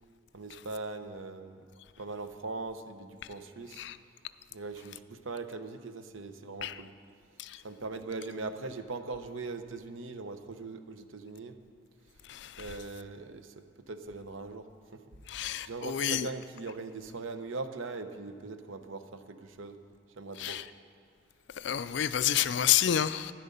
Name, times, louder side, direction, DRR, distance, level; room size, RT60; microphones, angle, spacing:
voice 1, 0.3-1.6 2.0-3.8 4.5-6.9 7.6-11.6 12.6-14.7 14.9-15.0 15.6-19.8 20.2-20.6, right 3 dB, 75° right, 0.8 m, -40 dB
voice 2, 12.3-12.7 15.3-16.3 20.4-20.6 21.6-23.3, left 10 dB, 60° left, 0.4 m, -29 dB
12.5 x 11.0 x 5.2 m
head